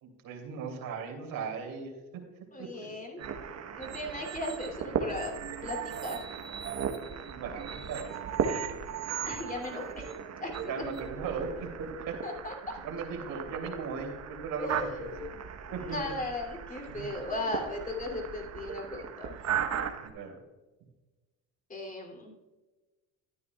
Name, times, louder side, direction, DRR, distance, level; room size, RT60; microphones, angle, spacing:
voice 1, 0.0-2.0 2.6-2.9 7.3-8.5 10.7-12.2 12.8-15.1 15.7-16.1 17.0-17.1 20.0-20.4, right 5 dB, 65° right, 2 dB, 3.1 m, -38 dB
voice 2, 2.5-3.2 3.8-5.3 5.6-6.3 9.3-10.1 10.4-10.7 12.2-12.8 14.6-15.3 15.8-19.3 21.7-22.3, left 2 dB, 20° left, 1 dB, 2.8 m, -37 dB
sound 1, 3.2-20.1, right 7 dB, 45° right, 1.2 m, -37 dB
12.5 x 9.6 x 2.3 m, 1.2 s
supercardioid pair, 90°, 36 cm